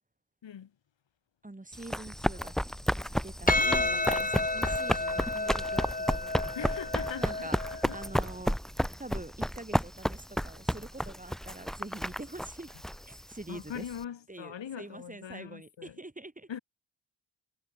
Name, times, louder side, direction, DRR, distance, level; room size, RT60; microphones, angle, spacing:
voice 1, 1.4-2.5 3.2-6.8 7.2-8.6 9.0-12.7 13.0-13.9 14.3-16.5, right 2 dB, 15° right, 3.4 m, -45 dB
Run, 1.7-14.0, equal, ahead, 3.0 m, -32 dB
voice 2, 3.5-4.1 6.5-8.0 13.5-16.0 16.5-16.6, left 9 dB, 65° left, 2.6 m, -41 dB
Percussion, 3.5-8.1, left 2 dB, 15° left, 2.5 m, -31 dB
cardioid pair, 55°, 48 cm